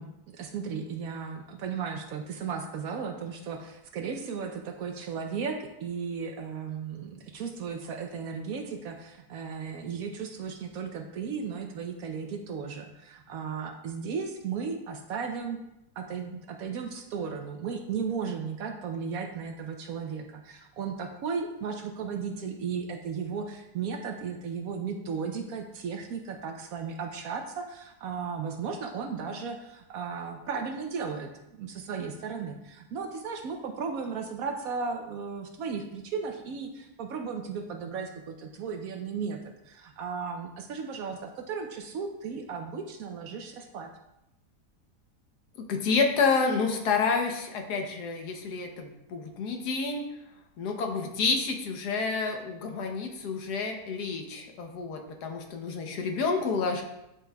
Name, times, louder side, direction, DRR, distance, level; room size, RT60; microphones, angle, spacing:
voice 1, 0.0-15.6 16.0-39.4 39.7-43.9, right 5 dB, 70° right, 4 dB, 1.0 m, -35 dB
voice 2, 45.7-50.1 50.6-56.8, left 4 dB, 75° left, 4 dB, 1.4 m, -29 dB
9.5 x 4.7 x 2.3 m, 0.89 s
omnidirectional pair, 1.8 m